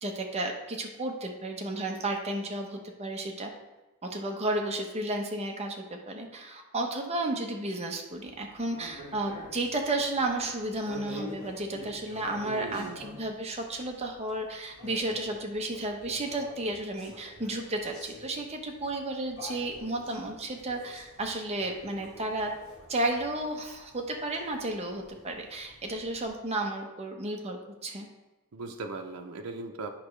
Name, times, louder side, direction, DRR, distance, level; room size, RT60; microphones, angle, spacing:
voice 1, 0.0-3.5 4.0-22.5 22.9-28.1, right 2 dB, 30° right, 2 dB, 0.9 m, -33 dB
sound 1, 8.1-26.3, equal, 70° left, 1.7 m, -48 dB
voice 2, 12.4-13.0 28.5-29.9, right 3 dB, 85° right, 3 dB, 0.6 m, -38 dB
8.5 x 5.9 x 3.2 m, 1.1 s
head